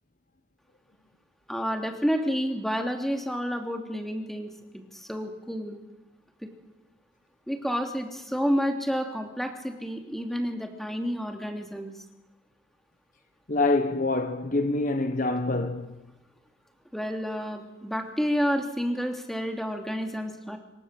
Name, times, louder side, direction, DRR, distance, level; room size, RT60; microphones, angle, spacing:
voice 1, 1.5-5.8 7.5-11.9 16.9-20.6, equal, ahead, 3.1 m, -30 dB
voice 2, 13.5-15.9, left 2 dB, 40° left, 1.2 m, -25 dB
27.5 x 23.5 x 7.7 m
head